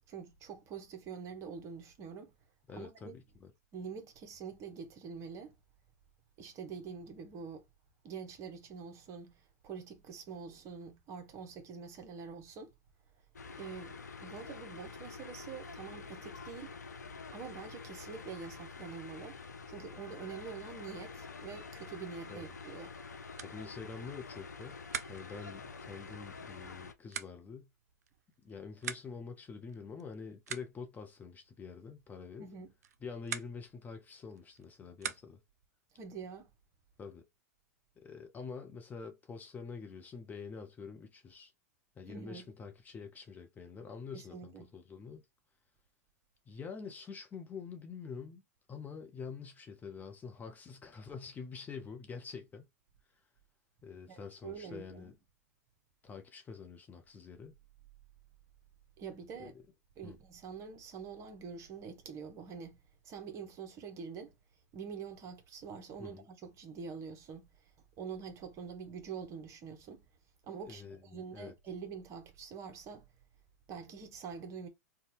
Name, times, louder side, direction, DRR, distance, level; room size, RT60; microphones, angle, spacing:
voice 1, 0.1-2.3 2.7-3.2 3.7-5.5 6.4-7.6 8.0-12.7 13.5-13.9 14.2-16.7 17.3-23.0 32.4-32.7 35.9-36.5 42.1-42.4 44.1-44.7 54.1-55.1 59.0-59.5 60.0-62.8 63.0-64.3 64.7-67.7 68.0-70.0 70.4-73.1 73.7-74.7, right 6 dB, 35° right, 0.8 m, -45 dB
voice 2, 2.7-3.5 22.3-22.5 23.4-24.8 25.1-27.7 28.4-32.4 33.0-35.4 37.0-37.2 38.0-41.5 42.0-45.2 46.5-48.4 48.7-52.7 53.8-55.1 56.0-57.6 59.4-59.5 60.0-60.2 66.0-66.3 70.7-71.5, left 5 dB, 20° left, 0.6 m, -46 dB
sound 1, 13.3-26.9, left 4 dB, 85° left, 0.4 m, -47 dB
sound 2, 23.3-35.6, right 8 dB, 70° right, 0.4 m, -47 dB
2.7 x 2.2 x 3.2 m
figure-of-eight pair, 100°, 9 cm